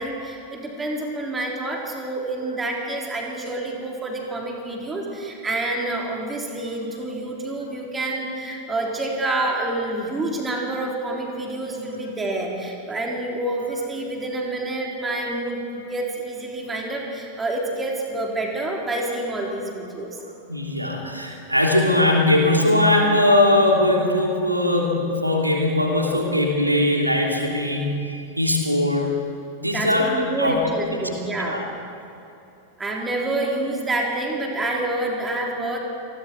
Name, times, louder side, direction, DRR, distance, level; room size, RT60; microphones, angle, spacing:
voice 1, 0.0-20.2 29.7-31.6 32.8-35.8, right 2 dB, 15° right, -1 dB, 3.8 m, -28 dB
voice 2, 20.5-29.0 29.6-30.6 30.9-31.0 31.4-31.6, left 1 dB, 85° right, 0 dB, 3.2 m, -20 dB
28.5 x 20.0 x 4.6 m, 2.8 s
figure-of-eight pair, 90°, 0 cm